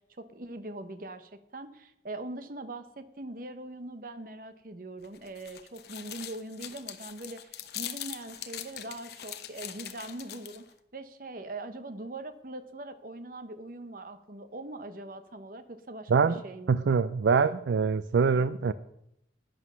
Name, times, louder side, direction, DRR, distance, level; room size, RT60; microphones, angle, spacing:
voice 1, 0.0-10.7 10.9-16.9, right 2 dB, 50° right, 10 dB, 0.9 m, -42 dB
sound 1, 5.0-10.7, left 11 dB, 60° left, 0.9 m, -42 dB
voice 2, 16.7-18.7, right 5 dB, 80° right, 14 dB, 0.4 m, -24 dB
11.5 x 9.6 x 6.1 m, 0.80 s
head